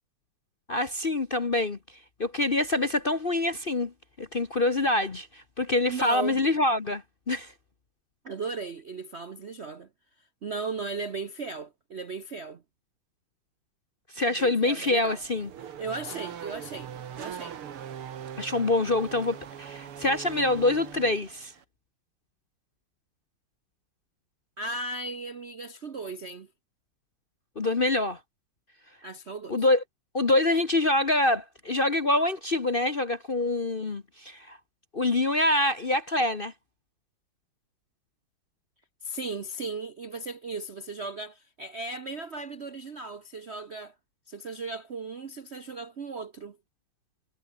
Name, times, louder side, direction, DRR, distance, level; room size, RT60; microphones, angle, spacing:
voice 1, 0.7-1.8 2.2-3.9 4.2-7.5 14.1-15.5 18.4-21.5 27.6-28.2 29.5-29.8 30.1-34.6 34.9-36.5, left 2 dB, 35° left, 1.0 m, -25 dB
voice 2, 5.9-6.4 8.2-9.9 10.4-12.6 14.4-15.2 15.8-17.6 24.6-26.5 29.0-29.6 39.0-43.9 44.3-46.6, right 3 dB, 45° right, 0.8 m, -36 dB
Race car auto racing / Accelerating revving vroom, 14.9-21.6, right 9 dB, 80° right, 2.5 m, -41 dB
omnidirectional pair, 2.4 m